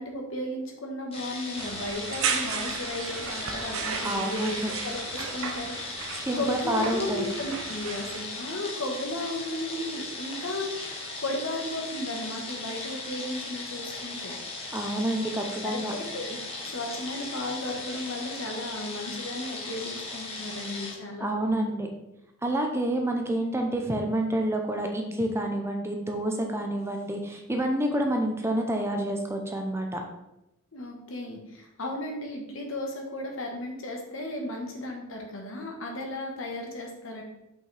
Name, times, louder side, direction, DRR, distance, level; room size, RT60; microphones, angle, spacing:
voice 1, 0.0-4.6 4.8-10.9 11.2-14.4 15.4-21.6 30.7-37.2, left 1 dB, 65° left, 1 dB, 1.3 m, -35 dB
sound 1, 1.1-20.9, left 3 dB, 25° left, 1.2 m, -38 dB
sound 2, 1.6-8.2, right 6 dB, 70° right, 0.7 m, -35 dB
voice 2, 4.0-4.7 6.2-7.3 14.7-15.9 21.2-21.9 22.4-30.0, right 1 dB, 10° right, 2 dB, 0.6 m, -28 dB
6.0 x 5.6 x 3.4 m, 0.89 s
head